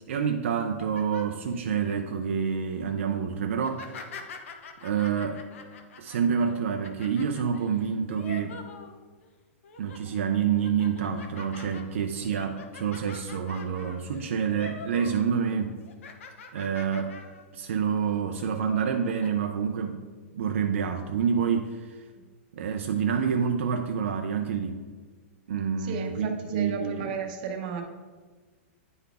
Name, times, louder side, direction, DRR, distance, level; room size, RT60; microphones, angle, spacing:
voice 1, 0.1-3.9 4.8-5.4 6.0-8.6 9.8-15.8 16.5-17.2 17.5-20.0 20.3-22.0 22.5-24.8 25.5-27.1, right 7 dB, 65° right, 4 dB, 0.5 m, -28 dB
sound 1, 0.6-2.0 2.5-2.8 3.5-9.3 9.6-10.1 10.5-15.3 15.5-17.5 17.9-18.0 18.7-19.3, left 4 dB, 70° left, 0.8 m, -45 dB
voice 2, 25.8-27.8, right 5 dB, 35° right, 3 dB, 0.8 m, -34 dB
9.4 x 4.0 x 3.4 m, 1.4 s
supercardioid pair, 175°, 7 cm